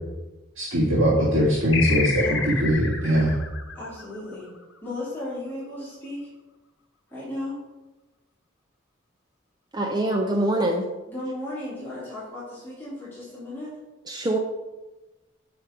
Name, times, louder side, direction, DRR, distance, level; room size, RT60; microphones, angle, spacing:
voice 1, 0.6-3.4, equal, 80° right, -7 dB, 1.9 m, -21 dB
sound 1, 1.7-4.7, left 6 dB, 65° left, 1.0 m, -30 dB
voice 2, 2.0-2.5 3.7-4.5 4.8-6.3 7.1-7.6 11.1-13.7, left 1 dB, 10° left, -10 dB, 3.1 m, -35 dB
voice 3, 9.7-10.8 14.1-14.4, right 1 dB, 20° right, 2 dB, 0.6 m, -24 dB
8.2 x 5.9 x 5.1 m, 1.1 s
head